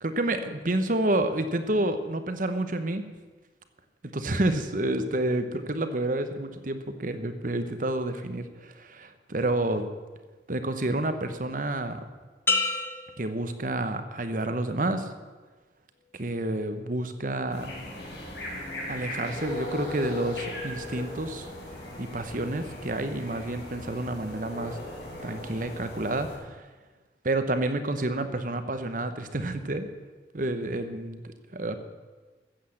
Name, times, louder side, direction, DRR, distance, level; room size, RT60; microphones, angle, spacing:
voice 1, 0.0-3.1 4.1-9.9 10.5-12.0 13.2-15.1 16.1-17.7 18.9-21.5 22.0-24.8 25.2-26.6 27.2-29.9 30.3-31.8, right 1 dB, 45° right, 9 dB, 1.0 m, -29 dB
sound 1, 12.5-14.2 14.7-15.2, left 3 dB, 15° left, 0.9 m, -31 dB
sound 2, 17.5-26.4, left 1 dB, 65° left, 5.1 m, -38 dB
14.5 x 8.2 x 7.2 m, 1.3 s
head